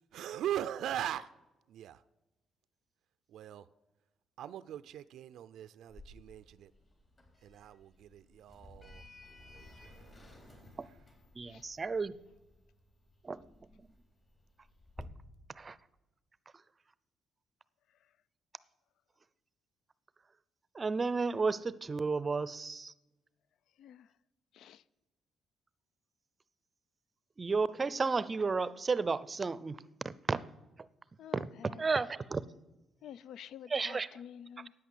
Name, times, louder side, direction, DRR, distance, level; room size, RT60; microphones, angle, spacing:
voice 1, 0.1-1.3 1.7-2.0 3.3-3.7 4.4-6.7 7.4-11.0, right 11 dB, 80° right, 0.4 m, -41 dB
Sliding door, 5.9-15.0, left 2 dB, 35° left, 4.0 m, -56 dB
voice 2, 11.4-12.2 13.2-13.4 15.6-15.8 20.7-22.9 27.4-30.5 31.3-31.5 31.8-32.4 33.7-34.1, right 4 dB, 30° right, 0.5 m, -32 dB
voice 3, 23.8-24.1 24.5-24.8 31.2-31.8 33.0-34.7, left 9 dB, 75° left, 0.4 m, -49 dB
11.0 x 9.0 x 8.3 m
cardioid pair, 90°, 0 cm